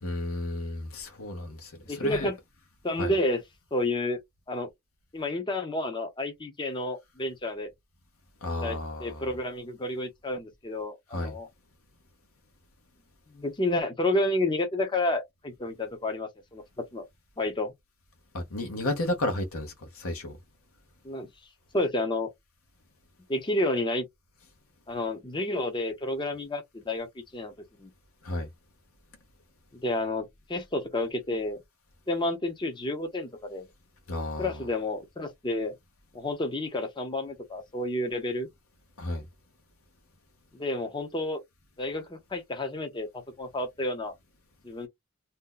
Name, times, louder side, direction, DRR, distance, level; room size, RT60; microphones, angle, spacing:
voice 1, 0.0-2.3 3.0-3.2 8.4-9.3 11.1-11.3 18.3-20.4 28.2-28.5 34.1-34.5 39.0-39.2, left 1 dB, 65° left, 0.8 m, -32 dB
voice 2, 1.9-2.4 2.8-3.4 3.7-4.2 4.5-4.7 5.1-7.7 8.6-11.5 13.3-16.6 16.9-17.1 17.4-17.7 21.0-21.3 21.7-22.3 23.3-24.0 24.9-27.1 27.3-27.5 27.8-27.9 29.8-31.6 32.1-33.6 34.4-35.7 36.1-38.5 40.5-41.4 41.8-44.1 44.6-44.9, left 1 dB, 20° left, 0.6 m, -30 dB
2.7 x 2.1 x 3.7 m
head